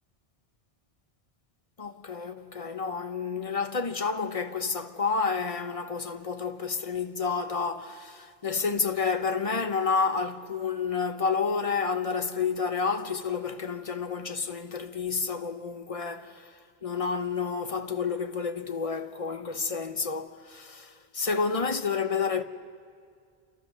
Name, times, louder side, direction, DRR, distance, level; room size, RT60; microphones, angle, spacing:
voice 1, 1.8-16.4 16.8-22.4, left 5 dB, 35° left, 1.0 m, -30 dB
29.5 x 28.0 x 6.8 m
omnidirectional pair, 1.0 m